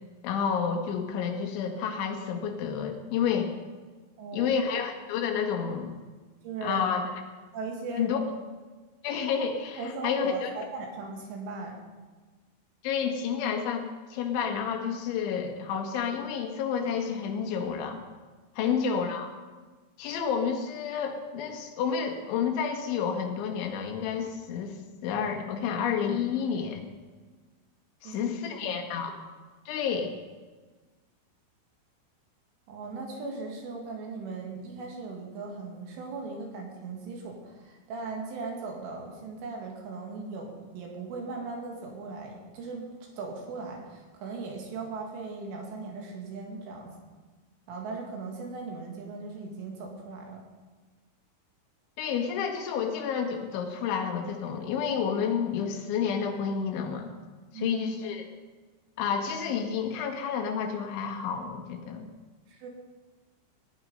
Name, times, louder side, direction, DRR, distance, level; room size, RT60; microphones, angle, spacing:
voice 1, 0.2-3.5 4.3-6.0 6.6-7.0 8.0-8.2 9.0-10.5 12.8-18.1 18.6-19.3 20.0-24.8 25.0-26.9 28.0-29.2 29.7-30.1 52.0-57.1 57.5-58.3 59.0-62.1, left 7 dB, 70° left, 3 dB, 3.7 m, -30 dB
voice 2, 4.2-4.5 6.4-6.8 7.5-8.1 9.8-11.9 18.6-18.8 28.0-28.2 28.5-28.7 32.7-46.9 47.7-50.4 57.5-57.7 62.5-62.7, right 3 dB, 70° right, 0 dB, 4.5 m, -38 dB
18.5 x 10.0 x 5.4 m, 1.3 s
omnidirectional pair, 6.0 m